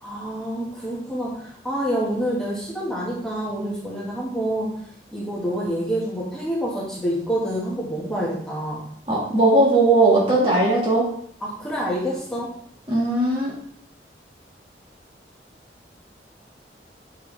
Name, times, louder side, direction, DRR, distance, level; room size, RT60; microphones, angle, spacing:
voice 1, 0.0-4.8 5.1-8.8 11.4-12.6, equal, 5° left, -6 dB, 1.5 m, -27 dB
voice 2, 9.1-11.1 12.9-13.5, right 2 dB, 30° right, -5 dB, 1.6 m, -18 dB
6.6 x 4.7 x 3.3 m, 0.64 s
head